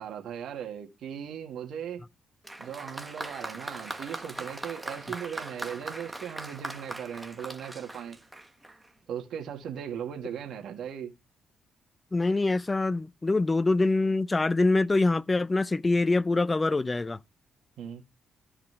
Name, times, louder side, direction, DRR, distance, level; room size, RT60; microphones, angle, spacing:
voice 1, 0.0-2.0 2.6-8.2 9.1-11.1 17.8-18.0, right 8 dB, 75° right, 2.2 m, -38 dB
Applause, 2.4-8.9, right 2 dB, 10° right, 1.4 m, -40 dB
voice 2, 12.1-17.2, left 3 dB, 20° left, 0.5 m, -24 dB
14.0 x 4.9 x 3.6 m
cardioid pair, 90°, 0 cm